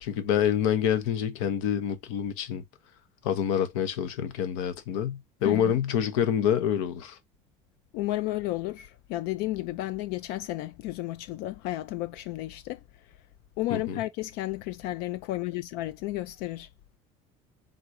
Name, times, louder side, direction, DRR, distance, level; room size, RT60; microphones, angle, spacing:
voice 1, 0.0-2.6 3.2-7.2 13.7-14.0, left 9 dB, 85° left, 0.8 m, -27 dB
voice 2, 5.4-5.8 7.9-13.1 13.6-16.7, left 16 dB, 70° left, 0.4 m, -32 dB
3.9 x 2.5 x 4.6 m
supercardioid pair, 105°, 16 cm